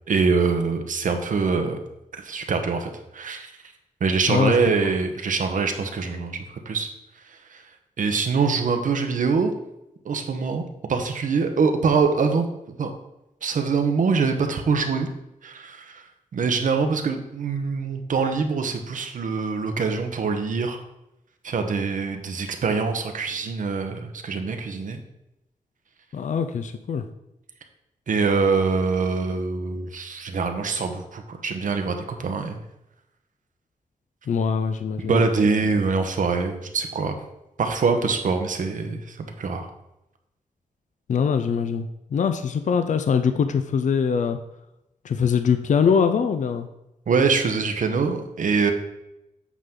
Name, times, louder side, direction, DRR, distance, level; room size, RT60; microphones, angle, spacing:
voice 1, 0.1-1.8 2.1-3.5 4.0-6.9 7.5-7.6 8.0-9.5 10.0-10.6 10.9-12.9 13.4-15.1 15.4-16.0 16.3-20.8 21.4-25.0 28.1-32.6 35.1-37.2 37.6-39.7 47.1-48.7, right 4 dB, 70° right, 6 dB, 0.9 m, -24 dB
voice 2, 26.1-27.0 34.3-35.3 41.1-44.4 45.0-46.7, left 6 dB, 60° left, 9 dB, 0.5 m, -23 dB
8.3 x 5.8 x 3.7 m, 0.89 s
wide cardioid pair, 165°, 14 cm